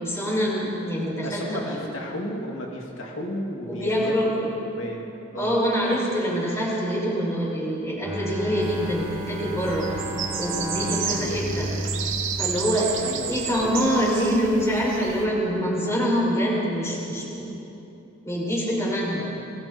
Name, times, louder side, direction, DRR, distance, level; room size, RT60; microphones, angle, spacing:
voice 1, 0.0-1.9 3.7-4.5 5.4-9.9 10.4-11.7 12.4-17.5 18.2-19.3, equal, 15° left, -5 dB, 6.7 m, -25 dB
voice 2, 1.2-4.1 4.6-5.0 5.3-5.6 11.1-11.8 13.0-13.8 19.1-19.3, equal, 75° left, -1 dB, 2.6 m, -34 dB
Bowed string instrument, 8.0-13.0, equal, 15° right, 5.6 m, -33 dB
sound 1, 8.6-15.2, right 7 dB, 75° right, 2.6 m, -32 dB
30.0 x 23.0 x 4.5 m, 2.9 s
head